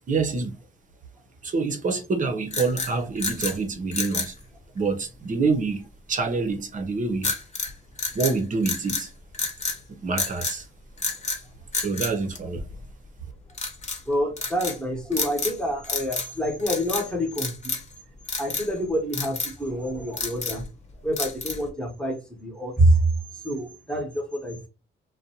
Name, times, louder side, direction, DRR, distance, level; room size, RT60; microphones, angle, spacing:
voice 1, 0.1-0.6 1.4-4.3 4.7-7.3 8.1-9.1 9.9-10.7 11.8-12.6, right 4 dB, 40° right, 0.7 m, -26 dB
sound 1, 2.5-3.6 3.9-4.3 7.2-7.7 8.0-9.1 9.3-9.8 10.2-10.6 11.0-11.4 11.7-12.9 13.5-14.0 14.4-14.8 15.1-15.6 15.8-16.3 16.6-17.1 17.4-17.9 18.3-18.7 19.1-19.5 20.0-20.7 21.2-21.7, left 3 dB, 35° left, 1.0 m, -30 dB
voice 2, 14.0-17.8 18.4-20.7 21.0-24.7, right 1 dB, 5° left, 0.9 m, -26 dB
2.5 x 2.2 x 2.8 m
cardioid pair, 90°, 20 cm